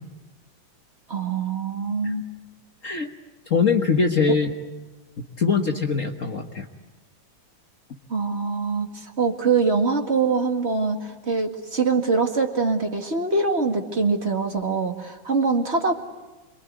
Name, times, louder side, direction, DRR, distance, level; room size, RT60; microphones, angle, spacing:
voice 1, 1.1-2.2 4.3-4.4 8.1-15.9, right 4 dB, 25° right, 5 dB, 1.5 m, -23 dB
voice 2, 3.5-4.5 5.4-6.7, left 5 dB, 75° left, 2 dB, 0.7 m, -22 dB
27.0 x 23.5 x 9.4 m, 1.1 s
omnidirectional pair, 3.7 m